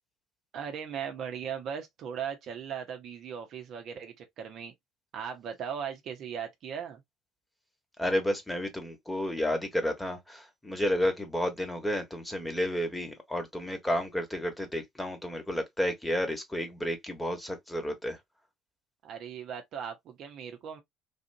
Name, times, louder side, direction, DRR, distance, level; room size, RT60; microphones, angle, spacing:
voice 1, 0.5-4.7 5.1-7.0 19.0-20.8, right 7 dB, 50° right, 0.7 m, -38 dB
voice 2, 8.0-18.2, equal, 10° left, 1.3 m, -31 dB
3.4 x 2.5 x 2.7 m
figure-of-eight pair, 60°, 0 cm